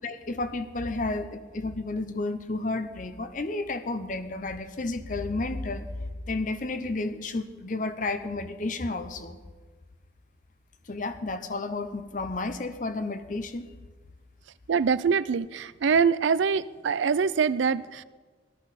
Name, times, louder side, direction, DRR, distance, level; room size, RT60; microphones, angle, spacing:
voice 1, 0.0-5.9 6.3-9.4 10.9-13.7, left 2 dB, 45° left, 10 dB, 0.8 m, -32 dB
voice 2, 14.7-18.0, right 6 dB, 85° right, 18 dB, 0.4 m, -24 dB
17.5 x 13.5 x 4.2 m, 1.4 s
head